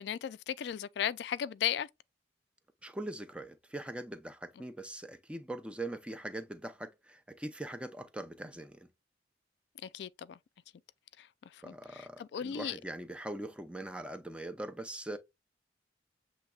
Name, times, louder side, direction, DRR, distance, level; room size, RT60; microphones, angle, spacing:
voice 1, 0.0-1.9 9.8-10.4 11.2-11.3 11.7-12.8, left 9 dB, 65° left, 0.3 m, -36 dB
voice 2, 2.8-8.9 11.6-15.2, right 1 dB, 5° right, 0.5 m, -42 dB
7.2 x 3.1 x 2.3 m
head